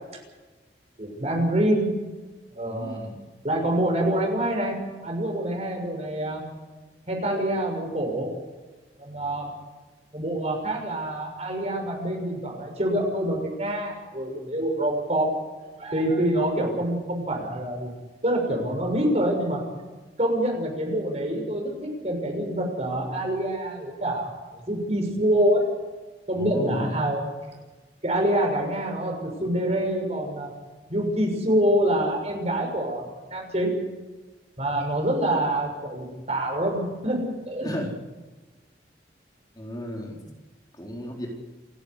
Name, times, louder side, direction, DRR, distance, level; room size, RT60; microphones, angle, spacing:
voice 1, 1.0-1.9 2.5-3.0 3.4-4.8 5.0-6.4 7.1-8.3 9.0-9.5 10.1-15.3 15.8-17.9 18.2-19.6 20.2-24.3 24.7-25.7 26.3-27.2 28.0-30.5 30.9-33.0 33.3-33.7 34.6-37.2 37.4-37.7, right 1 dB, 35° right, 2 dB, 6.7 m, -26 dB
voice 2, 2.7-3.2 26.3-27.0 37.6-37.9 39.6-40.3 40.8-41.3, equal, 20° left, 0 dB, 4.1 m, -34 dB
28.5 x 12.0 x 9.9 m, 1.2 s
head